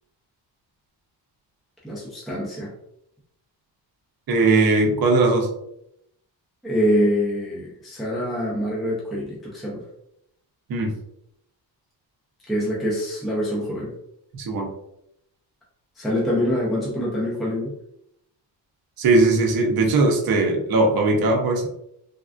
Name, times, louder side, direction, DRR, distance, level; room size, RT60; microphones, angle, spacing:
voice 1, 1.8-2.7 6.6-9.8 12.5-13.9 16.0-17.7, equal, ahead, -5 dB, 0.5 m, -25 dB
voice 2, 4.3-5.5 10.7-10.9 14.3-14.7 19.0-21.7, right 2 dB, 55° right, 2 dB, 0.8 m, -19 dB
3.5 x 2.3 x 2.4 m, 0.78 s
cardioid pair, 150°, 44 cm